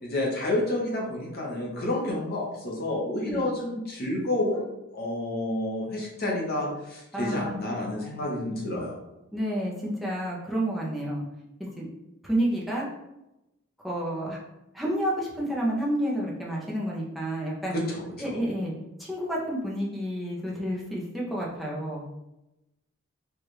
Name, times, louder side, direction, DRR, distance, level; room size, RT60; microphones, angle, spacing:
voice 1, 0.0-4.6 4.9-9.0 17.7-18.0, left 1 dB, 45° left, -2 dB, 1.1 m, -29 dB
voice 2, 7.1-8.3 9.3-11.2 11.6-11.9 12.2-12.9 13.8-14.4 14.7-17.8 18.2-18.7 19.0-22.1, right 1 dB, ahead, -5 dB, 0.8 m, -30 dB
4.7 x 2.5 x 3.1 m, 0.93 s
head